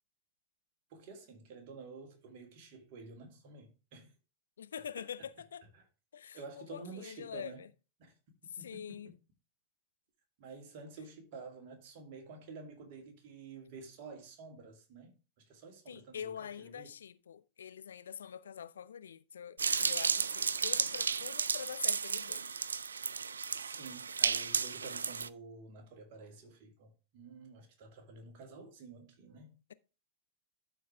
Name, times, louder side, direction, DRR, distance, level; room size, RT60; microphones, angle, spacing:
voice 1, 0.9-4.1 5.0-5.1 6.3-7.6 8.0-8.1 8.6-9.1 10.4-15.1 15.5-16.9 23.6-29.6, right 4 dB, 45° right, 2.5 m, -50 dB
voice 2, 4.6-5.6 6.1-7.7 8.5-9.1 15.9-22.5, left 8 dB, 65° left, 0.5 m, -45 dB
sound 1, 19.6-25.3, right 5 dB, 75° right, 0.4 m, -33 dB
12.5 x 4.6 x 3.4 m
figure-of-eight pair, 90°, 0 cm